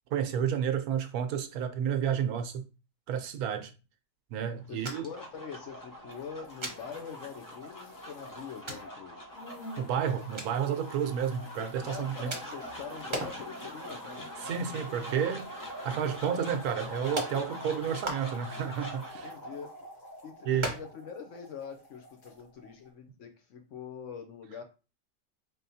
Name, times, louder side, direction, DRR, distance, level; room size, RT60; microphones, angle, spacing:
voice 1, 0.1-2.7 3.1-3.7 4.3-5.0 9.8-12.3 14.4-19.3 20.4-20.7, right 8 dB, 75° right, 1.1 m, -31 dB
sound 1, 4.6-22.9, equal, 25° left, 0.4 m, -44 dB
voice 2, 4.7-9.3 11.8-14.3 19.2-19.7 20.2-24.6, left 7 dB, 65° left, 0.8 m, -44 dB
sound 2, 4.8-5.2 5.5-5.6 6.6-6.8 7.7-7.8 8.7-8.9 10.4-10.6 12.3-12.7 13.1-13.5 13.9-14.0 14.4-15.3 15.5-15.6 16.5-16.6 17.2-17.4 18.0-18.6 19.1-19.8 20.6-21.1 21.3-21.5 21.8-21.9 22.3-22.4, right 1 dB, 25° right, 0.6 m, -37 dB
sound 3, 6.1-9.0 9.3-21.2 21.5-22.4, left 2 dB, 85° left, 1.4 m, -54 dB
4.0 x 3.4 x 2.7 m
omnidirectional pair, 1.6 m